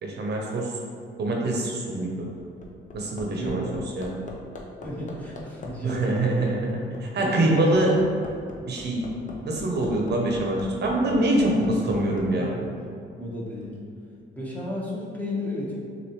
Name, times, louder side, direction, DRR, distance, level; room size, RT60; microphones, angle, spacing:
voice 1, 0.0-0.7 1.2-2.3 2.9-3.6 4.0-4.1 5.8-8.0 8.7-9.1 9.4-12.6, right 1 dB, 55° right, -1 dB, 0.8 m, -24 dB
Hammer, 2.4-12.3 13.6-13.7, left 3 dB, 40° left, 0.8 m, -40 dB
voice 2, 3.3-3.8 4.8-6.4 7.2-7.7 11.9-12.0 12.4-12.8 13.2-13.8 14.3-15.7, left 1 dB, 10° left, -6 dB, 1.1 m, -33 dB
6.5 x 2.5 x 3.0 m, 2.4 s
cardioid pair, 90°, 20 cm